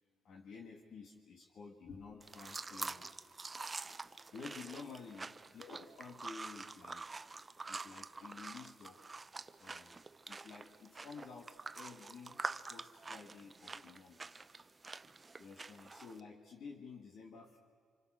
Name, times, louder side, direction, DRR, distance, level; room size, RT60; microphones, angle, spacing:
voice 1, 0.2-3.2 4.3-7.1 7.7-9.2 9.6-10.0 10.3-14.5 15.4-17.6, left 5 dB, 65° left, 2 dB, 1.8 m, -52 dB
sound 1, 2.2-16.2, right 3 dB, 25° right, 0.6 m, -47 dB
25.5 x 25.0 x 6.3 m, 2.1 s
cardioid pair, 90°, 0 cm